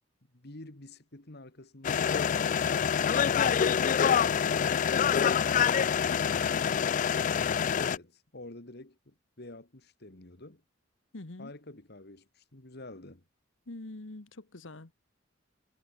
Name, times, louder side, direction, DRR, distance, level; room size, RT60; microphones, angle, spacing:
voice 1, 0.3-3.7 7.7-10.6 11.4-13.2, left 2 dB, 60° left, 2.6 m, -49 dB
sound 1, 1.8-8.0, left 7 dB, 40° left, 0.3 m, -26 dB
voice 2, 6.0-6.8 11.1-11.5 13.7-14.9, left 2 dB, 85° left, 1.5 m, -45 dB
head